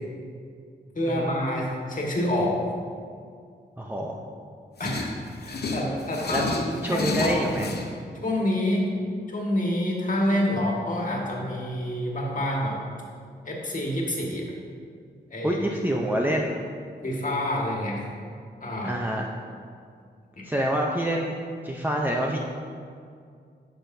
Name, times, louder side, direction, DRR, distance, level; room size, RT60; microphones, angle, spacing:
voice 1, 0.9-2.6 4.8-5.1 5.4-7.7 8.2-8.9 9.3-12.8 13.4-14.5 15.3-15.6 17.0-18.1 18.6-18.9 20.4-20.5, left 1 dB, 45° left, -2 dB, 1.6 m, -27 dB
voice 2, 3.8-4.2 6.3-6.4 6.8-7.9 15.4-16.6 18.8-19.3 20.4-21.4 21.6-22.4, right 1 dB, 10° right, -1 dB, 0.6 m, -26 dB
sound 1, 4.8-7.9, left 3 dB, 60° left, 0.8 m, -31 dB
10.5 x 6.5 x 2.7 m, 2.2 s
cardioid pair, 70°, 19 cm